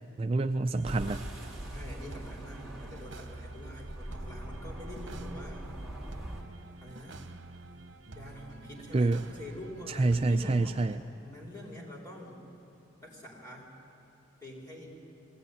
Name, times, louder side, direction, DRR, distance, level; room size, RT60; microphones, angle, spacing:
voice 1, 0.2-1.2 8.9-9.3 9.9-11.0, right 2 dB, 30° right, 7 dB, 0.4 m, -27 dB
sound 1, 0.7-11.0, right 2 dB, 70° right, 1.0 m, -48 dB
sound 2, 0.8-6.4, right 1 dB, ahead, 2.9 m, -42 dB
voice 2, 1.7-5.7 6.8-7.2 8.1-10.8 11.2-12.4 13.0-13.7 14.4-14.9, left 1 dB, 20° left, -3 dB, 4.2 m, -45 dB
20.5 x 16.5 x 9.4 m, 2.8 s
head